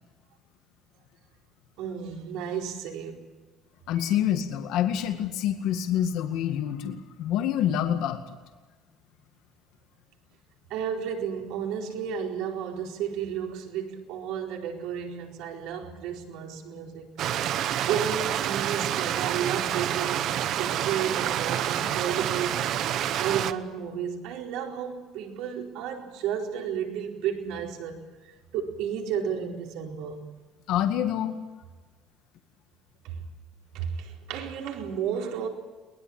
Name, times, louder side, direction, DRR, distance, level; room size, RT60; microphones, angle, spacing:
voice 1, 1.8-3.3 4.1-4.2 10.7-17.1 17.6-22.7 23.2-30.2 33.0-33.2 33.7-35.5, right 8 dB, 75° right, 4.5 m, -32 dB
voice 2, 3.9-8.4 30.7-31.4, left 10 dB, 65° left, 2.1 m, -27 dB
Stream, 17.2-23.5, right 11 dB, 50° right, 0.9 m, -28 dB
22.5 x 21.0 x 8.9 m
cardioid pair, 170°, 0 cm